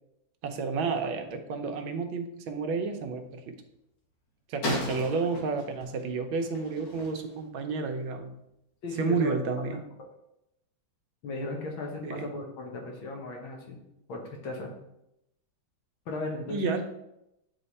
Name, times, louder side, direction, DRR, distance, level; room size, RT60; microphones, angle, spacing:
voice 1, 0.4-3.5 4.5-8.3 9.0-9.8 12.0-12.3 16.5-16.8, right 4 dB, 80° right, 6 dB, 1.5 m, -31 dB
sound 1, 2.9-3.1 4.6-7.5, left 1 dB, 65° left, 2.2 m, -36 dB
voice 2, 8.8-9.4 11.2-13.8 14.1-14.7 16.1-16.8, left 2 dB, 85° left, 1 dB, 2.0 m, -36 dB
8.4 x 3.3 x 4.1 m, 0.84 s
omnidirectional pair, 2.1 m